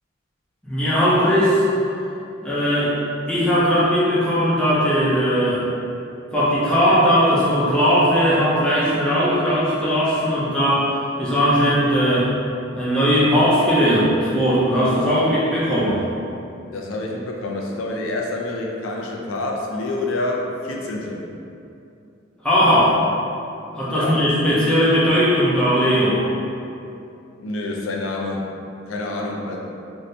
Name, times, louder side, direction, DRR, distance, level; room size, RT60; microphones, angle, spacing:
voice 1, 0.6-1.6 2.4-3.0 3.3-5.6 6.3-12.3 12.7-16.0 22.4-23.1 23.8-26.2, equal, 5° left, -10 dB, 0.5 m, -18 dB
voice 2, 16.7-21.2 23.9-24.2 27.4-28.5 28.9-29.6, left 2 dB, 85° left, 0 dB, 0.4 m, -27 dB
2.7 x 2.6 x 3.2 m, 2.6 s
head